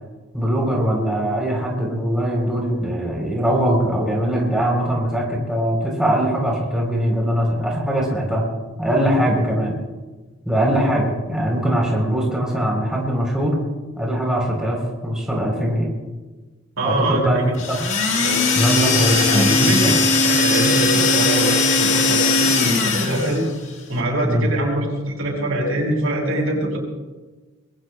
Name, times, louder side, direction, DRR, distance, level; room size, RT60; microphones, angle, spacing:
voice 1, 0.3-8.5 8.8-9.8 10.5-13.6 14.0-15.9 16.8-17.8 18.5-20.0 24.2-24.5, equal, 5° right, -2 dB, 3.4 m, -21 dB
voice 2, 16.8-17.2 18.1-18.4 18.9-20.0 20.2-23.5 23.9-26.8, right 1 dB, 75° right, 0 dB, 5.7 m, -23 dB
sound 1, 17.6-23.5, left 3 dB, 65° left, 1.8 m, -19 dB
26.0 x 21.5 x 2.2 m, 1.2 s
head